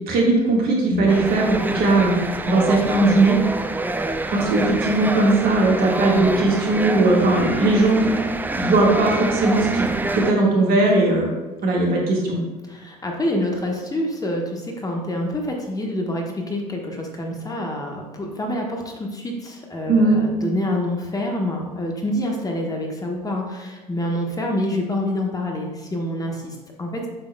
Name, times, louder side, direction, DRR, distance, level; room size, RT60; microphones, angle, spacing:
voice 1, 0.1-3.4 4.3-8.1 8.6-9.8 10.1-11.3 11.6-12.4 19.9-20.2, right 2 dB, 50° right, -1 dB, 1.7 m, -18 dB
voice 2, 0.9-1.3 12.7-27.1, left 1 dB, 20° left, 1 dB, 1.1 m, -27 dB
sound 1, 1.1-10.3, right 2 dB, 10° right, 0.5 m, -26 dB
7.9 x 5.9 x 2.2 m, 1.2 s
figure-of-eight pair, 60°, 20 cm